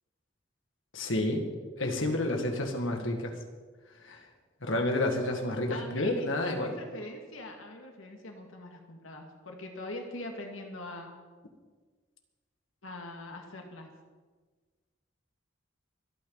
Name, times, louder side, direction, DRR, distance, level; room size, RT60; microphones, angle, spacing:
voice 1, 0.9-1.4 1.8-3.3 4.0-4.2 4.6-6.8, left 1 dB, 75° left, 3 dB, 2.0 m, -30 dB
voice 2, 5.7-11.1 12.8-13.9, left 1 dB, 90° left, 2 dB, 2.1 m, -42 dB
25.0 x 9.3 x 4.1 m, 1.4 s
head